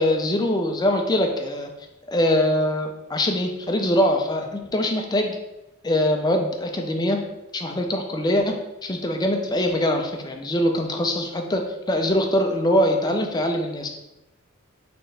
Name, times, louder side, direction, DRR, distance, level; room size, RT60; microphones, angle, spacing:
voice 1, 0.0-1.7 2.1-5.4 5.8-7.2 7.5-8.5 8.8-13.9, left 1 dB, 20° left, 3 dB, 0.5 m, -23 dB
4.3 x 3.8 x 3.3 m, 0.95 s
head